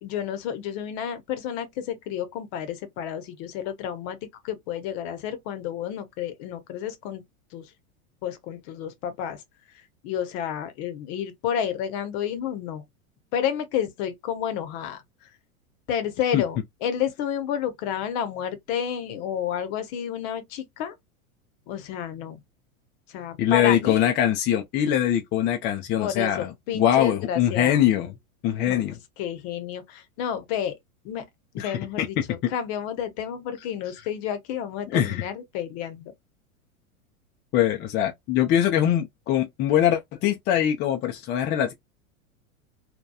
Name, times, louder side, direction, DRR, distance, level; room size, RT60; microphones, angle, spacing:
voice 1, 0.0-7.2 7.5-7.7 8.2-9.4 10.0-12.8 13.3-15.3 15.9-20.9 21.7-22.4 23.1-24.1 26.0-27.8 28.6-28.8 29.2-30.8 31.0-31.3 31.5-36.1, left 9 dB, 50° left, 0.8 m, -30 dB
voice 2, 23.4-28.1 28.4-29.0 31.6-32.5 34.9-35.2 37.5-41.7, left 11 dB, 25° left, 0.4 m, -23 dB
2.8 x 2.2 x 2.2 m
hypercardioid pair, 105°, 41 cm